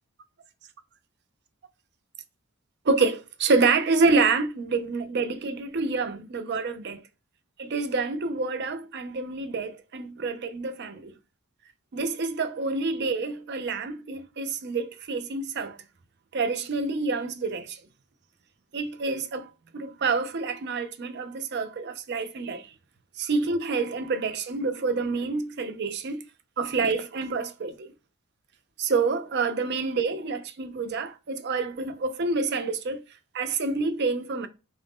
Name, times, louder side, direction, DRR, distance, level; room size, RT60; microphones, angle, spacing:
voice 1, 2.8-7.0 7.6-11.1 11.9-15.8 16.3-17.8 18.7-22.7 23.2-26.2 26.6-27.9 28.8-33.0 33.3-34.5, right 4 dB, 50° right, 0.5 m, -27 dB
3.9 x 2.6 x 3.5 m
head